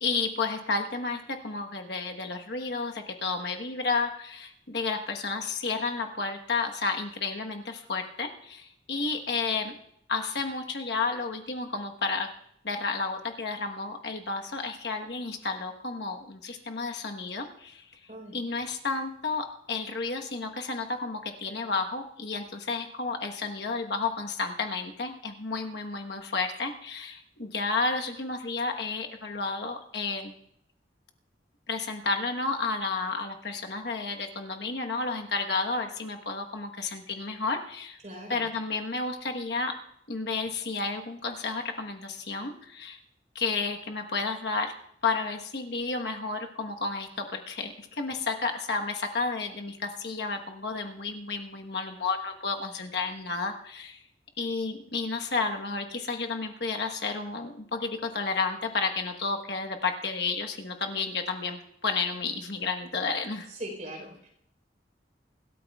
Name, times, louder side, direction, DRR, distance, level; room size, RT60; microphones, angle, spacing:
voice 1, 0.0-9.8 10.1-12.3 12.6-17.8 18.3-30.3 31.7-38.0 38.3-39.7 40.1-43.0 43.3-44.7 45.0-54.0 54.4-63.5, left 4 dB, 65° left, 3 dB, 1.2 m, -31 dB
voice 2, 38.0-38.5 63.5-64.3, right 1 dB, 40° right, 1 dB, 4.0 m, -40 dB
25.0 x 13.0 x 2.3 m, 0.71 s
head